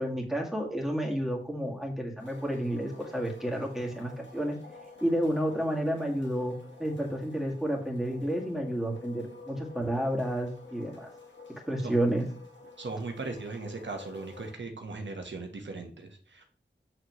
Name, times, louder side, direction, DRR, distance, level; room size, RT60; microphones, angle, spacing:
voice 1, 0.0-4.5 5.0-11.1 11.7-12.3, right 1 dB, ahead, -1 dB, 2.3 m, -30 dB
sound 1, 2.2-14.5, left 4 dB, 75° left, 1.7 m, -49 dB
voice 2, 12.8-16.5, right 3 dB, 75° right, 4 dB, 1.4 m, -38 dB
7.8 x 6.5 x 3.2 m, 0.41 s
wide cardioid pair, 55°, 19 cm